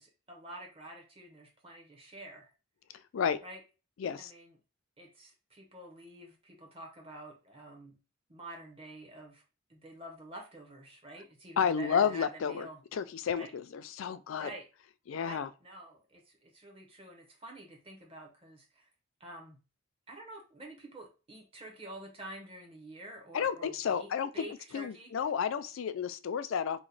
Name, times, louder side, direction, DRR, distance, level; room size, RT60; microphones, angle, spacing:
voice 1, 0.0-2.5 3.4-3.6 4.2-4.5 5.0-7.9 8.3-9.4 9.7-12.8 13.3-13.5 14.4-14.7 15.2-18.9 19.2-19.6 20.1-24.1 24.3-25.1, right 1 dB, 25° right, 0.8 m, -48 dB
voice 2, 4.0-4.3 11.6-14.5 15.1-15.5 23.3-24.4 24.7-26.8, left 7 dB, 75° left, 0.3 m, -31 dB
3.0 x 2.1 x 3.9 m
head